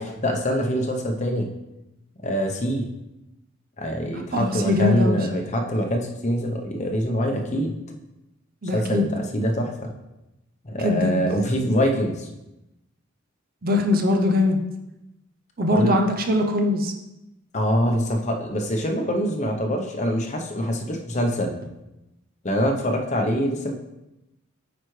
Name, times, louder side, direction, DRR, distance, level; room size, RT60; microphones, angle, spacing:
voice 1, 0.0-1.5 2.2-2.9 3.8-7.7 8.7-9.7 10.6-12.3 15.7-16.0 17.5-21.6 22.4-23.7, equal, 35° left, 2 dB, 0.8 m, -24 dB
voice 2, 4.3-5.2 8.6-9.1 10.8-11.2 13.6-14.6 15.6-16.9, left 2 dB, 45° right, 3 dB, 0.6 m, -21 dB
9.1 x 4.9 x 3.2 m, 0.94 s
head